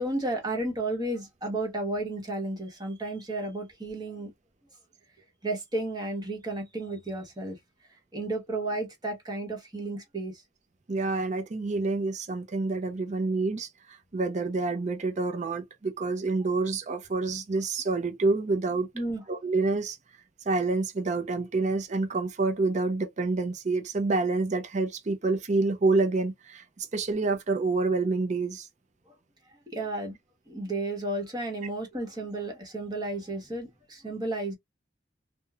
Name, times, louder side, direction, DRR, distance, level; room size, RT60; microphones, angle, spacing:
voice 1, 0.0-4.3 5.4-7.6 8.1-10.3 18.9-19.2 29.7-30.2 30.5-34.5, right 2 dB, 25° right, 1.0 m, -32 dB
voice 2, 10.9-18.9 19.3-20.0 20.5-28.7, right 3 dB, 40° right, 0.5 m, -28 dB
2.9 x 2.2 x 2.2 m
head